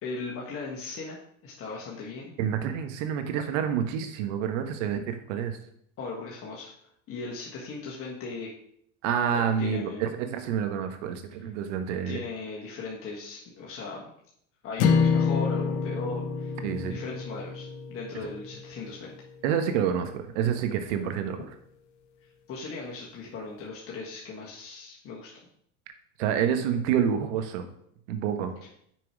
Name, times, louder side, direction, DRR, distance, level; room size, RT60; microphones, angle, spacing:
voice 1, 0.0-1.2 1.4-2.3 6.0-6.7 7.1-8.5 9.3-10.0 12.0-14.1 14.6-16.6 16.9-19.1 22.5-25.3, left 4 dB, 35° left, -3 dB, 1.5 m, -38 dB
voice 2, 2.4-5.6 9.0-12.2 16.6-17.0 19.4-21.4 26.2-27.6 28.1-28.5, right 8 dB, 65° right, 8 dB, 1.2 m, -28 dB
sound 1, 14.8-19.1, left 5 dB, 70° left, 0.9 m, -27 dB
6.1 x 4.6 x 4.7 m, 0.68 s
supercardioid pair, 120°, 38 cm